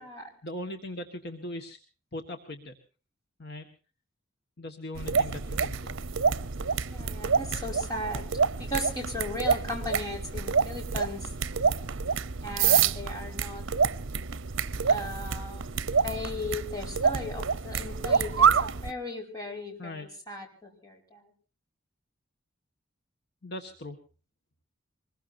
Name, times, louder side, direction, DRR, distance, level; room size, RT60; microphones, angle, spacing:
voice 1, 0.4-1.8 2.1-2.8 3.4-3.7 4.6-6.0 7.0-7.1 19.8-20.1 23.4-24.0, left 1 dB, 55° left, 5 dB, 1.8 m, -39 dB
sound 1, 5.0-18.9, right 6 dB, 80° right, 0.8 m, -27 dB
voice 2, 6.9-8.2 8.6-11.3 12.4-13.6 14.9-15.7 16.0-21.3, left 1 dB, 20° left, 1 dB, 5.5 m, -37 dB
24.5 x 21.5 x 2.8 m, 0.37 s
head